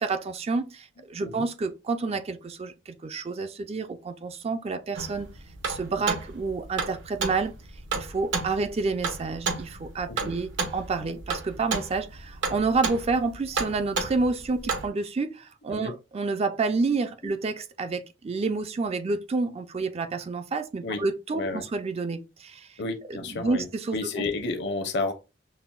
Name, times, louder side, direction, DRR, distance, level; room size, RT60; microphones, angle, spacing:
voice 1, 0.0-5.3 5.7-7.5 8.0-22.7 23.4-24.0, right 4 dB, 30° right, 0.4 m, -29 dB
sound 1, 5.0-14.9, right 4 dB, 70° right, 0.9 m, -32 dB
voice 2, 22.8-25.1, left 3 dB, 60° left, 0.7 m, -31 dB
5.5 x 2.1 x 2.3 m
head